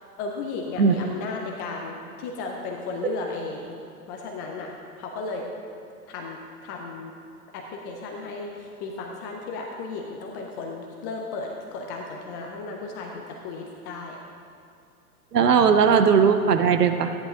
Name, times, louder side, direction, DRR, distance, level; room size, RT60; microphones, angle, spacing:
voice 1, 0.0-3.8 4.1-5.4 6.1-7.1 7.5-14.2, left 3 dB, 15° left, 1 dB, 0.3 m, -35 dB
voice 2, 15.3-17.2, right 6 dB, 85° right, 8 dB, 0.8 m, -18 dB
13.5 x 10.0 x 3.7 m, 2.5 s
figure-of-eight pair, 105°, 46 cm